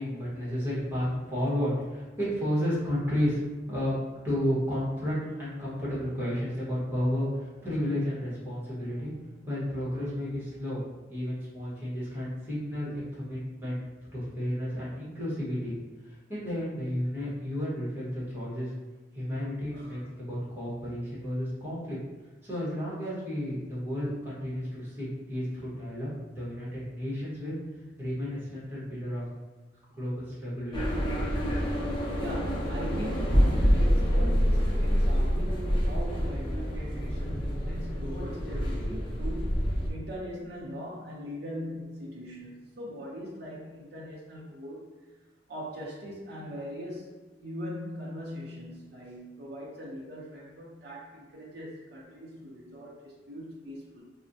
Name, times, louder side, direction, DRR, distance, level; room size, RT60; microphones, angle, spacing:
voice 1, 0.0-3.4 3.7-4.0 4.2-9.1 9.5-10.8 11.1-13.8 14.1-15.8 16.1-18.7 19.1-22.0 22.4-27.6 28.0-29.2 29.9-30.9, equal, 10° right, -9 dB, 1.0 m, -32 dB
voice 2, 19.7-20.0 32.2-44.9 45.5-47.1 47.4-54.0, equal, 60° right, -5 dB, 0.6 m, -41 dB
sound 1, 30.7-39.9, equal, 25° left, 0.5 m, -27 dB
4.1 x 2.1 x 2.6 m, 1.2 s
head